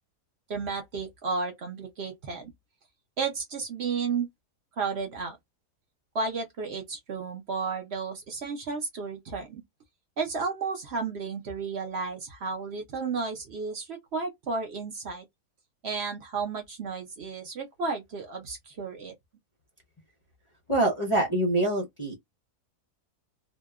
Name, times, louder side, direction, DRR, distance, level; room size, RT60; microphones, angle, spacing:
voice 1, 0.5-2.5 3.2-4.3 4.8-5.4 6.1-9.6 10.2-15.2 15.8-19.1, right 4 dB, 60° right, 0.7 m, -33 dB
voice 2, 20.7-22.2, right 1 dB, 40° left, 0.4 m, -25 dB
2.7 x 2.1 x 2.3 m
omnidirectional pair, 1.7 m